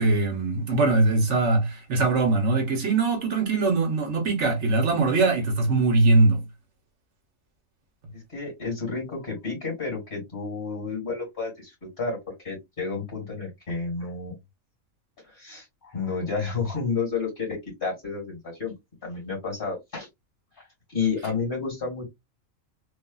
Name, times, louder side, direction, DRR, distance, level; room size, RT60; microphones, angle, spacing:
voice 1, 0.0-6.4, right 3 dB, 60° right, 1.1 m, -22 dB
voice 2, 8.1-12.2 12.4-14.4 15.3-18.7 19.0-20.1 20.9-22.1, left 4 dB, 40° left, 2.0 m, -31 dB
3.2 x 2.3 x 2.2 m
omnidirectional pair, 1.4 m